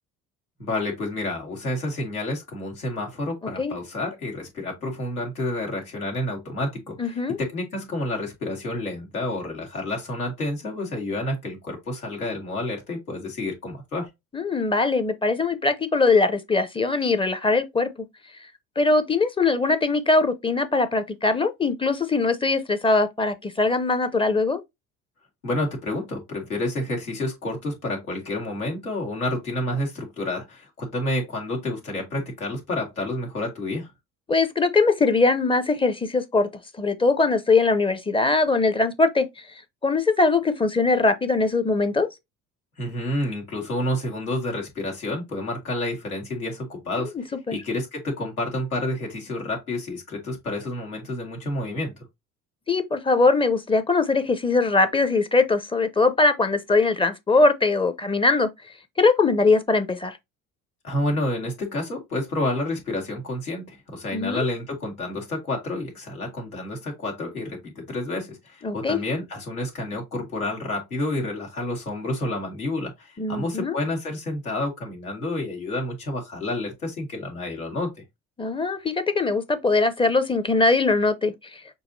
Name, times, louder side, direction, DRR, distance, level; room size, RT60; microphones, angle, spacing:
voice 1, 0.6-14.1 25.4-33.9 42.8-47.1 47.5-51.9 60.8-77.9, left 1 dB, 85° left, 1.6 m, -29 dB
voice 2, 7.0-7.4 14.3-17.9 18.8-24.6 34.3-36.5 36.8-39.3 39.8-42.1 47.0-47.6 52.7-58.5 59.0-60.2 64.1-64.4 68.6-69.0 73.2-73.8 78.4-81.6, left 3 dB, 10° left, 0.6 m, -21 dB
6.3 x 2.7 x 2.6 m
figure-of-eight pair, 60°, 42 cm